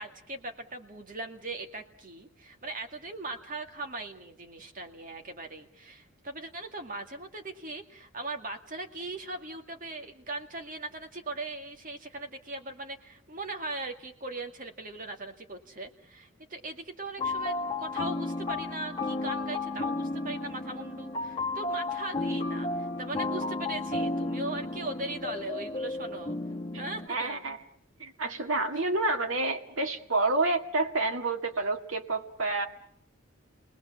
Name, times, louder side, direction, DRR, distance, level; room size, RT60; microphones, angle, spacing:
voice 1, 0.0-26.4 26.7-27.6, right 2 dB, 40° right, 5 dB, 2.2 m, -39 dB
sound 1, 17.2-27.1, left 2 dB, 25° left, 1.6 m, -33 dB
voice 2, 27.1-27.6 28.0-32.7, right 2 dB, 75° right, 4 dB, 2.1 m, -29 dB
29.5 x 20.0 x 7.2 m, 0.64 s
head